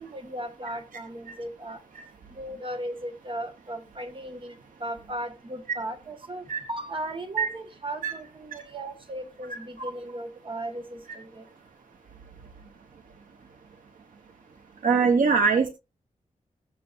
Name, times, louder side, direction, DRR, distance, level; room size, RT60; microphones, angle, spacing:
voice 1, 0.0-1.8 2.3-4.5 4.8-11.4, right 1 dB, 40° right, 1.6 m, -36 dB
voice 2, 9.5-9.9 14.8-15.7, right 5 dB, 75° right, 1.2 m, -23 dB
20.0 x 6.9 x 2.6 m
wide cardioid pair, 140°, 14 cm